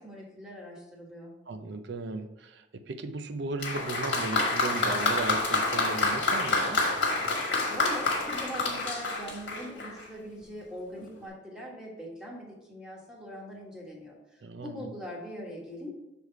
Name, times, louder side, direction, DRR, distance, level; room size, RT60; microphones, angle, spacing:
voice 1, 0.0-1.3 7.7-15.9, equal, 5° right, -4 dB, 1.3 m, -41 dB
voice 2, 1.5-6.9 14.4-14.9, right 3 dB, 65° right, 8 dB, 0.5 m, -36 dB
Applause, 3.6-10.1 11.0-11.1, left 3 dB, 65° left, 1.5 m, -28 dB
6.4 x 3.5 x 4.5 m, 0.94 s
head